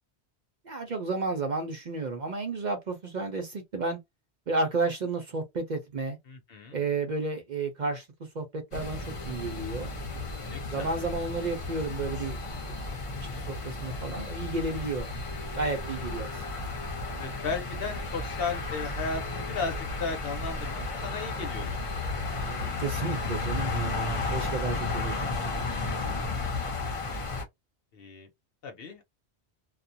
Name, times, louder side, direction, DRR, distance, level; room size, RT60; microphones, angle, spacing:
voice 1, 0.6-4.0 4.5-6.2 6.7-8.1 8.3-9.9 10.7-12.4 12.6-12.7 13.3-15.1 15.6-16.3 22.2-25.3, right 3 dB, 50° right, 0.6 m, -32 dB
voice 2, 6.3-6.8 10.5-10.9 17.2-21.8 27.9-28.3 28.6-29.0, left 4 dB, 60° left, 0.9 m, -35 dB
sound 1, 8.7-27.4, left 3 dB, 35° left, 0.7 m, -33 dB
2.4 x 2.1 x 2.6 m
omnidirectional pair, 1.1 m